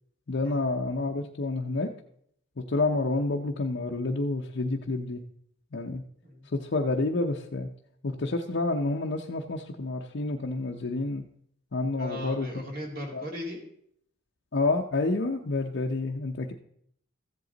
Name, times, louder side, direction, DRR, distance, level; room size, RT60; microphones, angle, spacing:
voice 1, 0.3-1.9 2.6-5.2 5.7-6.0 6.4-7.7 8.0-11.2 11.7-12.5 13.1-13.2 14.5-16.5, left 2 dB, 55° left, 0 dB, 0.7 m, -29 dB
voice 2, 12.0-13.6, left 1 dB, 45° right, 1 dB, 2.2 m, -37 dB
14.5 x 7.9 x 3.9 m, 0.69 s
head